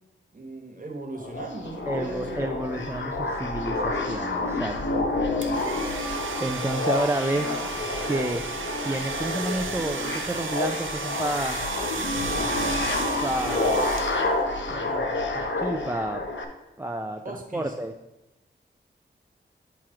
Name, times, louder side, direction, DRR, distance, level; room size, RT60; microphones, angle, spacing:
voice 1, 0.3-2.5 4.7-5.8 14.7-15.0 17.2-17.7, right 2 dB, 45° right, 2 dB, 1.2 m, -39 dB
sound 1, 1.2-16.4, left 2 dB, 70° left, 0.7 m, -29 dB
voice 2, 1.8-5.1 6.4-7.6 8.1-8.4 8.8-11.6 13.2-14.6 15.3-16.2 16.8-17.9, right 1 dB, 15° right, 4 dB, 0.3 m, -30 dB
sound 2, 5.4-14.5, right 3 dB, 80° right, 0.6 m, -33 dB
8.9 x 3.0 x 4.7 m, 0.96 s
wide cardioid pair, 95°, 20 cm